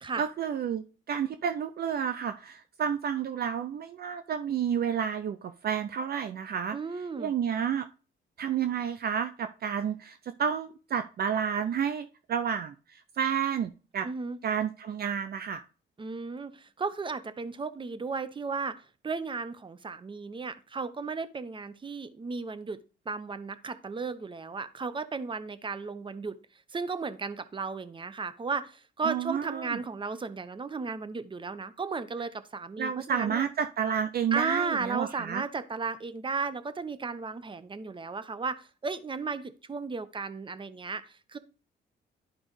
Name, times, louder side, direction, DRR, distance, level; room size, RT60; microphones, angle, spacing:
voice 1, 0.2-6.8 7.2-7.9 8.4-12.7 13.2-14.1 14.4-15.6 29.0-29.8 32.8-35.4, right 8 dB, 50° right, 0.5 m, -30 dB
voice 2, 6.7-7.3 14.0-14.4 16.0-22.8 23.1-26.4 26.7-33.5 34.3-41.4, right 4 dB, 25° right, 0.8 m, -35 dB
11.0 x 5.1 x 3.2 m
cardioid pair, 90°, 20 cm